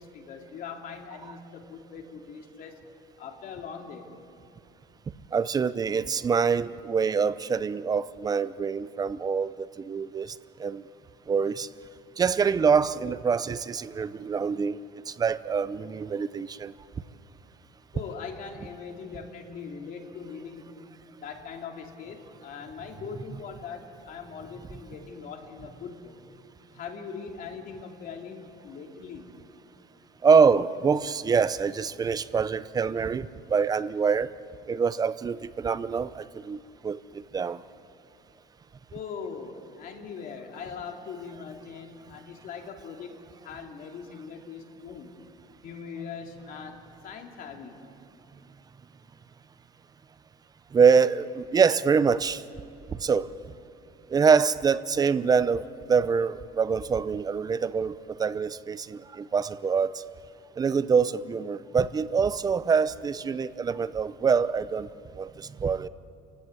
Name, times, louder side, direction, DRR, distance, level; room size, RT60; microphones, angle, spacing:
voice 1, 0.0-2.8 3.2-4.1 17.9-20.8 21.2-26.2 26.7-29.3 38.9-45.1 45.6-47.8, left 6 dB, 50° left, 3 dB, 2.7 m, -41 dB
voice 2, 5.3-10.3 10.6-10.8 11.3-11.7 12.2-14.8 15.1-16.7 30.2-34.3 34.7-37.6 50.7-52.4 53.0-53.3 54.1-60.0 60.6-64.9 65.2-65.9, right 6 dB, 20° right, 15 dB, 0.6 m, -25 dB
28.0 x 16.0 x 9.6 m, 2.6 s
cardioid pair, 150°, 18 cm